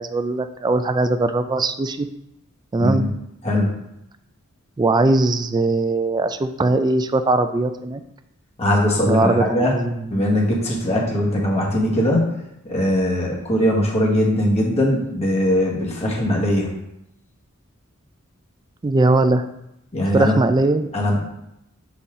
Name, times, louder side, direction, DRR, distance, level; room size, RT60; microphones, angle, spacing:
voice 1, 0.0-2.1 2.7-3.1 4.8-8.0 9.1-10.3 18.8-19.4 20.1-20.9, right 2 dB, 20° right, 9 dB, 0.3 m, -20 dB
voice 2, 8.6-9.7 10.1-12.3 12.6-16.7 19.9-20.4 20.9-21.2, left 1 dB, 30° left, -2 dB, 1.4 m, -20 dB
7.1 x 4.1 x 3.7 m, 0.82 s
head